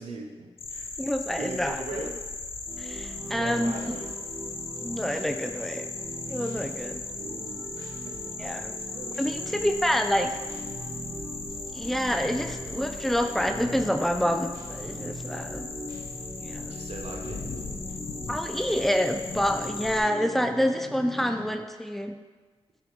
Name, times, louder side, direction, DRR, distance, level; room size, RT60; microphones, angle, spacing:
voice 1, 0.0-0.9 1.4-2.2 3.3-4.1 7.1-8.2 8.9-9.7 16.6-17.5, right 2 dB, 75° right, 1 dB, 0.6 m, -40 dB
sound 1, 0.6-20.0, left 3 dB, 65° left, 0.5 m, -38 dB
voice 2, 1.0-2.0 2.8-3.8 4.8-5.9 6.3-7.0 8.4-8.8 9.2-10.3 11.7-15.7 16.4-16.7 18.3-22.2, equal, ahead, 6 dB, 0.3 m, -27 dB
sound 2, 2.7-21.5, right 1 dB, 30° right, 1.0 m, -41 dB
6.1 x 2.3 x 3.5 m, 1.4 s
cardioid pair, 60°, 11 cm